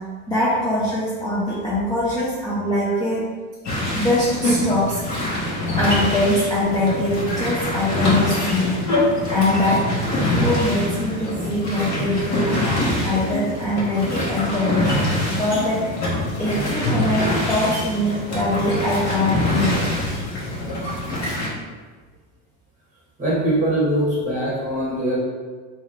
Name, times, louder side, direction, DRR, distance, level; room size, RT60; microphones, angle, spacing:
voice 1, 0.3-3.3 4.0-5.0 5.8-8.8 9.3-9.9 10.3-12.6 13.0-15.9 16.4-19.8, left 1 dB, 10° left, -8 dB, 0.5 m, -22 dB
sound 1, 3.6-21.5, left 1 dB, 40° left, 1.2 m, -24 dB
voice 2, 23.2-25.2, right 1 dB, 20° right, -6 dB, 1.3 m, -22 dB
3.2 x 2.9 x 3.2 m, 1.4 s
supercardioid pair, 130°, 43 cm